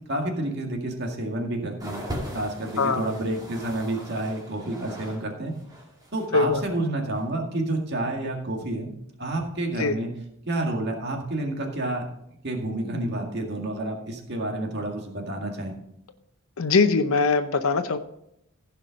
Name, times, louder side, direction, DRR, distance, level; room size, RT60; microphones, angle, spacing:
voice 1, 0.1-2.0 2.3-5.5 6.1-8.9 9.2-10.1 10.5-12.0 12.4-15.7, right 1 dB, 55° right, 1 dB, 2.0 m, -29 dB
sound 1, 1.8-5.2 5.5-6.4 7.1-7.2, equal, 20° right, 2.5 m, -39 dB
voice 2, 2.8-3.1 6.3-6.6 9.8-10.0 16.6-18.0, left 4 dB, 80° left, 9 dB, 0.7 m, -22 dB
15.5 x 5.6 x 5.2 m, 0.78 s
head